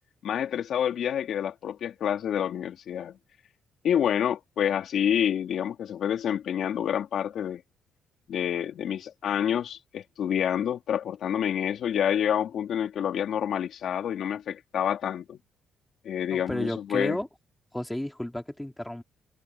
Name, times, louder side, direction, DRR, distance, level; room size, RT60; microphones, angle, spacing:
voice 1, 0.2-3.2 3.8-7.6 8.3-15.4 16.0-17.2, left 9 dB, 65° left, 2.6 m, -28 dB
voice 2, 16.3-17.3 17.7-19.0, left 1 dB, 5° left, 3.2 m, -32 dB
cardioid pair, 90°, 0 cm